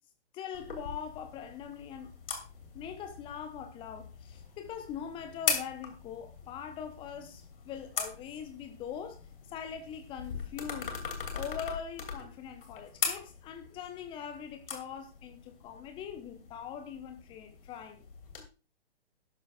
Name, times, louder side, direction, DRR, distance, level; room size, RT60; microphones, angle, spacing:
voice 1, 0.3-2.1 2.7-9.2 9.5-11.0 11.3-18.1, left 8 dB, 15° left, 0.8 m, -42 dB
sound 1, 0.5-18.4, left 6 dB, 55° left, 2.9 m, -41 dB
12.5 x 12.0 x 2.5 m
figure-of-eight pair, 120°, 33 cm